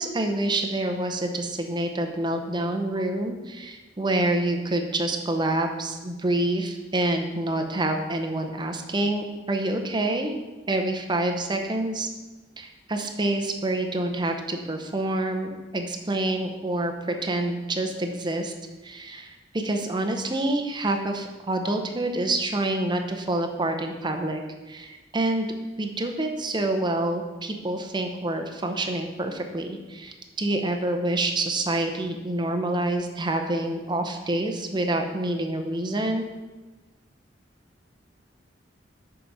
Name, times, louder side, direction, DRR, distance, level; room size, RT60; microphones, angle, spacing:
voice 1, 0.0-10.4 10.7-12.1 12.6-18.5 18.8-24.4 24.7-25.5 25.8-36.3, right 1 dB, 25° right, 5 dB, 0.8 m, -27 dB
7.4 x 4.9 x 5.5 m, 1.2 s
head